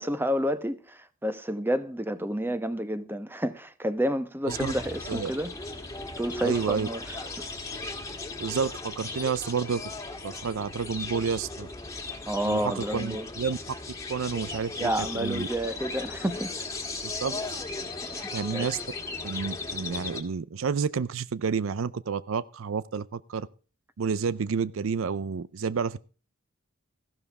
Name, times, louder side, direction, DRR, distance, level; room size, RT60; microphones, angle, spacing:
voice 1, 0.0-5.5 6.2-7.0 7.4-7.5 12.3-13.3 14.8-16.5 18.0-18.7, equal, 10° right, 1.0 m, -30 dB
sound 1, 4.5-20.2, left 3 dB, 15° left, 1.7 m, -37 dB
voice 2, 6.4-6.9 8.4-9.8 10.2-11.7 12.4-13.6 14.1-14.9 15.1-15.5 17.0-17.6 18.3-18.8 19.2-23.5 24.0-26.0, right 5 dB, 80° right, 0.5 m, -30 dB
15.0 x 12.5 x 3.5 m
head